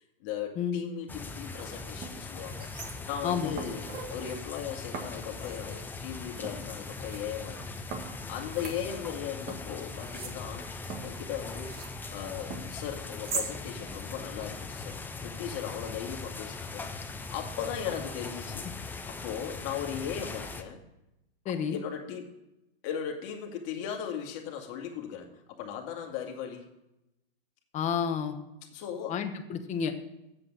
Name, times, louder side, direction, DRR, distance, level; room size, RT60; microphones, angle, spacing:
voice 1, 0.2-2.7 3.1-3.8 4.1-7.9 8.3-10.6 11.0-11.7 12.1-16.9 17.3-18.7 19.1-20.8 21.5-22.3 22.8-26.7 28.7-29.2, left 8 dB, 40° left, 2 dB, 2.0 m, -37 dB
sound 1, 1.1-20.6, left 4 dB, 5° left, 0.5 m, -40 dB
sound 2, 1.5-1.6 2.0-3.2 3.6-4.4 4.9-5.8 6.4-7.2 7.9-9.2 9.5-12.0 12.5-13.5 13.9-14.0, right 4 dB, 30° right, 1.8 m, -41 dB
voice 2, 21.4-21.8 27.7-28.4 29.1-30.0, left 7 dB, 25° left, 7 dB, 1.0 m, -30 dB
7.8 x 7.7 x 7.3 m, 0.92 s
hypercardioid pair, 125°, 30 cm